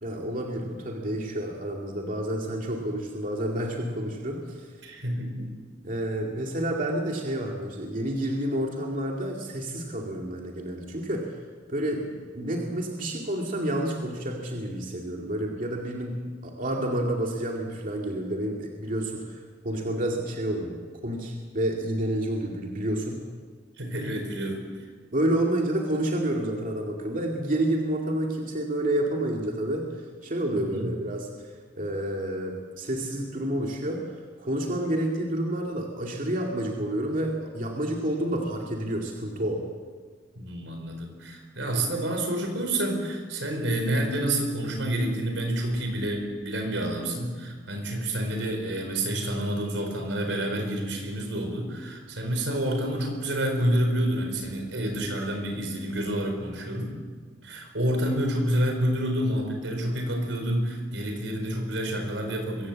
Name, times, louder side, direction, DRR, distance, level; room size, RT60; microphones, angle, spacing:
voice 1, 0.0-4.9 5.8-11.4 11.7-23.2 25.1-29.9 30.2-31.3 31.8-39.6, right 1 dB, 45° right, 0 dB, 2.3 m, -29 dB
voice 2, 4.8-5.5 23.8-24.6 30.5-30.9 40.4-56.9 57.4-62.7, right 1 dB, 85° right, 4 dB, 4.5 m, -28 dB
23.0 x 16.0 x 7.5 m, 1.5 s
head